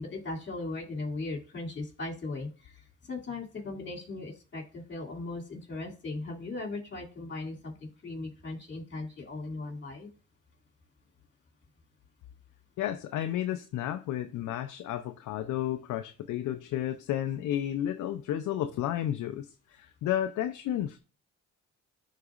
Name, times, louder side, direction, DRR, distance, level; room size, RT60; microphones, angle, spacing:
voice 1, 0.0-2.8 3.1-10.1, left 2 dB, 40° left, 2.6 m, -38 dB
voice 2, 12.8-21.0, left 11 dB, 75° left, 0.5 m, -32 dB
11.0 x 4.0 x 2.4 m
cardioid pair, 90°, 30 cm